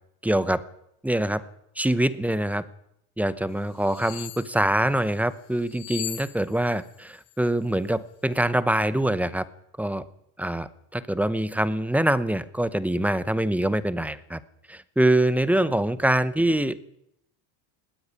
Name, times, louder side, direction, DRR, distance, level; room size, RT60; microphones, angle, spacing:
voice 1, 0.2-0.6 1.0-1.4 1.8-2.6 3.2-9.5 9.8-10.0 10.4-14.4 14.7-16.8, right 1 dB, 5° right, 16 dB, 0.8 m, -24 dB
sound 1, 3.8-4.5 5.7-6.9 7.1-7.3, left 15 dB, 90° left, 2.2 m, -37 dB
19.5 x 15.5 x 9.8 m, 0.77 s
cardioid pair, 140°, 49 cm